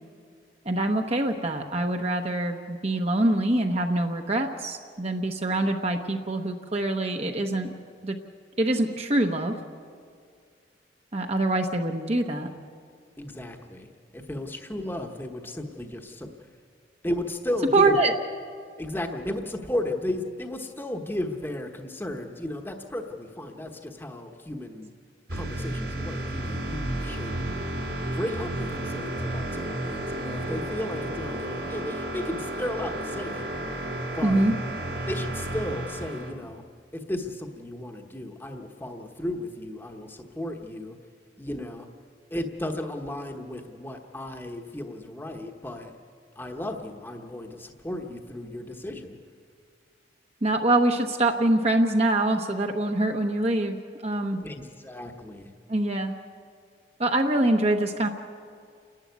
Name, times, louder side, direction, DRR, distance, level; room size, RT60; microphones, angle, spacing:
voice 1, 0.6-7.7 8.0-8.2 8.6-9.6 11.1-12.5 17.7-18.1 34.2-34.5 50.4-53.8 54.0-54.4 55.7-56.2 57.0-58.1, right 2 dB, 35° right, 4 dB, 1.0 m, -24 dB
voice 2, 13.2-16.3 17.0-18.0 18.8-24.9 25.3-27.4 28.1-33.5 34.1-34.5 35.1-36.6 36.9-41.0 41.4-41.9 42.3-45.9 46.4-49.2 54.4-55.5, left 1 dB, 10° left, 4 dB, 1.1 m, -34 dB
sound 1, 25.3-36.3, right 1 dB, 65° right, 4.1 m, -32 dB
29.0 x 11.5 x 9.4 m, 2.1 s
head